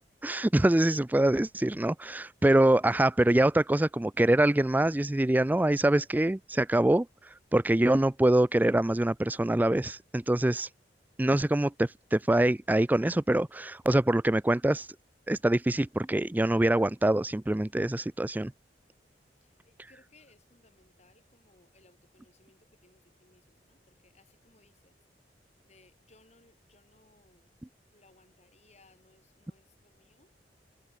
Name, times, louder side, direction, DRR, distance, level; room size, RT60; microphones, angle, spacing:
voice 1, 0.0-10.7 11.2-14.9 15.3-18.5, right 1 dB, 10° right, 0.4 m, -25 dB
voice 2, 19.4-25.0 25.6-27.5 27.9-30.3, left 2 dB, 40° left, 4.6 m, -63 dB
head